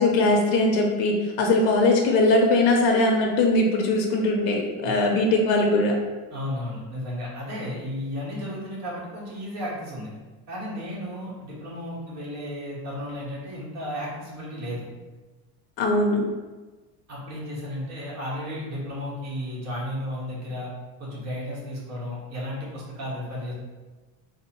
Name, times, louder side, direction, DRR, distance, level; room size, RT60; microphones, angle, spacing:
voice 1, 0.0-5.9 15.8-16.3, left 2 dB, 65° left, 0 dB, 0.7 m, -21 dB
voice 2, 6.3-10.1 10.5-14.9 17.1-20.7 21.0-23.5, left 1 dB, 40° right, -6 dB, 1.5 m, -33 dB
3.4 x 2.2 x 4.3 m, 1.3 s
cardioid pair, 140°, 41 cm